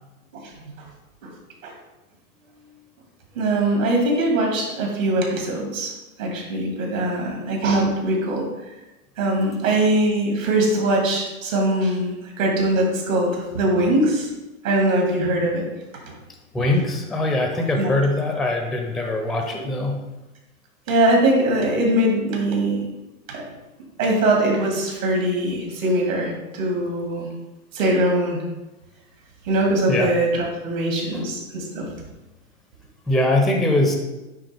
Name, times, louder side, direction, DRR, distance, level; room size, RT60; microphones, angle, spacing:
voice 1, 3.3-5.9 6.2-8.5 9.2-14.3 14.6-15.7 16.1-16.2 17.8-17.9 20.9-22.8 23.3-23.4 24.0-27.3 27.7-28.4 29.5-31.9, right 1 dB, 65° right, 0 dB, 2.4 m, -21 dB
voice 2, 16.5-20.0 29.9-30.1 31.1-31.2 33.1-34.0, left 2 dB, ahead, 2 dB, 0.6 m, -22 dB
9.5 x 3.5 x 3.5 m, 1.0 s
hypercardioid pair, 105°, 42 cm